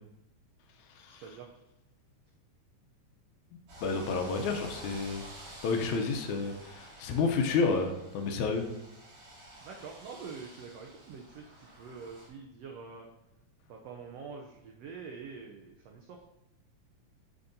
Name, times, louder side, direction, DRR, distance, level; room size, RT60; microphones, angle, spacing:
voice 1, 1.1-1.5 9.6-13.1 13.7-16.2, right 5 dB, 90° right, 2 dB, 1.4 m, -45 dB
sound 1, 3.7-12.3, right 1 dB, 50° right, 2.9 m, -50 dB
voice 2, 3.8-5.2 5.6-8.7, left 4 dB, 75° left, 4 dB, 2.0 m, -30 dB
8.9 x 7.0 x 2.7 m, 0.89 s
omnidirectional pair, 3.6 m